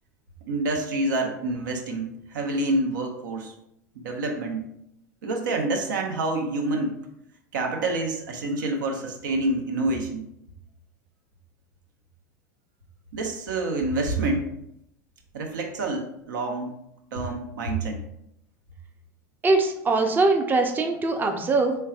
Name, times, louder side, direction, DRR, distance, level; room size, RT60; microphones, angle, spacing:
voice 1, 0.5-3.5 3.9-4.6 5.2-7.0 7.5-10.2 13.1-14.5 15.3-16.7 17.1-18.0, right 2 dB, 75° right, 3 dB, 0.7 m, -27 dB
voice 2, 19.4-21.8, right 3 dB, 20° right, 4 dB, 0.5 m, -22 dB
4.4 x 3.3 x 2.4 m, 0.79 s
hypercardioid pair, 90°, 10 cm